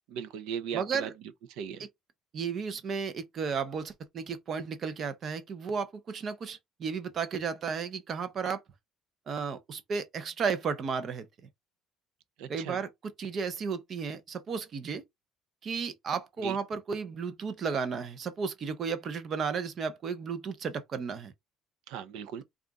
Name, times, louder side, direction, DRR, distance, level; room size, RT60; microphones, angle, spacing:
voice 1, 0.1-1.1 1.5-1.9 12.4-12.8 16.4-16.6 21.9-22.4, right 8 dB, 80° right, 0.6 m, -37 dB
voice 2, 0.7-1.1 2.3-8.6 9.3-11.3 12.5-15.0 15.6-21.3, right 5 dB, 35° right, 0.7 m, -33 dB
3.8 x 2.5 x 3.4 m
cardioid pair, 160°, 0 cm